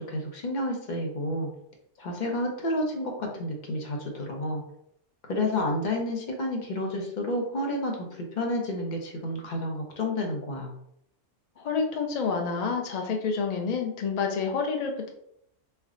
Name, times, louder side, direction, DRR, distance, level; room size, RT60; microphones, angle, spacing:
voice 1, 0.0-1.5 2.0-4.6 5.3-10.7, left 1 dB, 45° left, 1 dB, 0.7 m, -30 dB
voice 2, 11.6-15.1, left 5 dB, 85° left, 3 dB, 0.3 m, -28 dB
3.3 x 2.2 x 3.7 m, 0.72 s
omnidirectional pair, 1.3 m